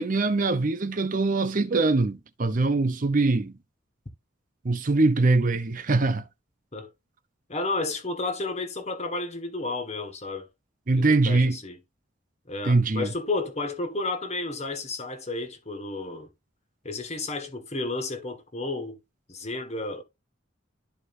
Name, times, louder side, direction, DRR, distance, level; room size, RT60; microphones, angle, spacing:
voice 1, 0.0-3.5 4.6-6.2 10.9-11.6 12.6-13.1, right 3 dB, 40° right, 0.6 m, -23 dB
voice 2, 7.5-10.5 11.0-11.8 12.5-16.3 16.8-19.0 19.3-20.0, left 3 dB, 35° left, 1.6 m, -32 dB
13.0 x 4.7 x 2.6 m
head